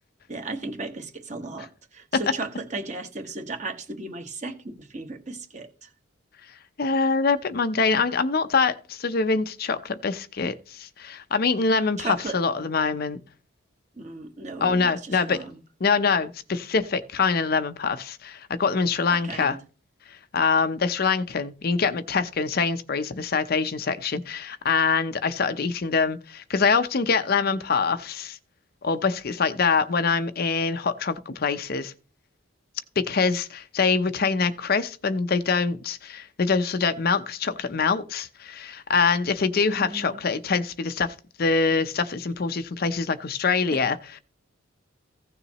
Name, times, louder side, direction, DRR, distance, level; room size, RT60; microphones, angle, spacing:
voice 1, 0.3-5.9 12.0-12.4 14.0-15.6 19.1-19.6 39.8-40.2 43.7-43.8, right 3 dB, 35° right, 1.3 m, -35 dB
voice 2, 6.8-12.1 12.3-13.2 14.6-15.4 15.8-19.6 20.3-28.4 28.8-31.9 33.0-44.0, left 5 dB, 50° left, 0.6 m, -24 dB
15.5 x 6.8 x 2.9 m
head